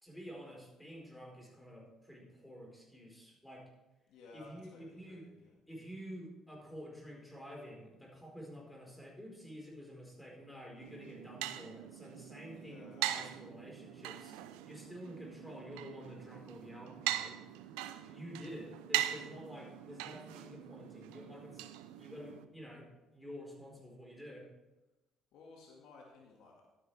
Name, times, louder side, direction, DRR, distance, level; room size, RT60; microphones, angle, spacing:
voice 1, 0.0-3.7 4.3-5.3 5.7-14.4 14.6-17.4 18.1-21.7 21.9-24.5, equal, 5° left, -2 dB, 4.4 m, -49 dB
voice 2, 4.1-5.5 12.5-13.0 25.3-26.6, left 3 dB, 75° left, -1 dB, 2.0 m, -56 dB
sound 1, 10.8-22.4, right 14 dB, 90° right, 0.5 m, -41 dB
12.0 x 10.0 x 3.4 m, 1.0 s
supercardioid pair, 75°, 0 cm